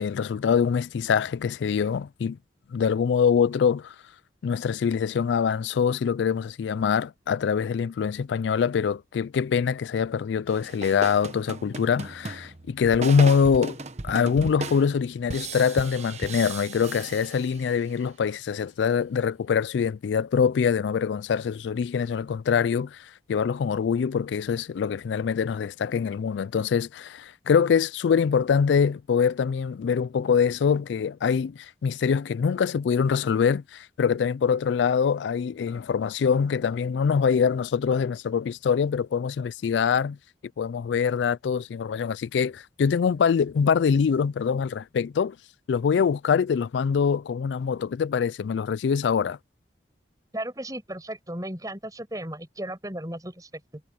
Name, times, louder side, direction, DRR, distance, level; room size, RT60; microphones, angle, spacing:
voice 1, 0.0-2.4 2.7-3.9 4.4-13.8 14.0-40.2 40.6-45.4 45.7-49.4, left 6 dB, 85° left, 0.3 m, -24 dB
sound 1, 10.5-17.9, right 3 dB, 40° right, 1.1 m, -36 dB
voice 2, 50.3-53.8, right 1 dB, 20° right, 6.3 m, -35 dB
head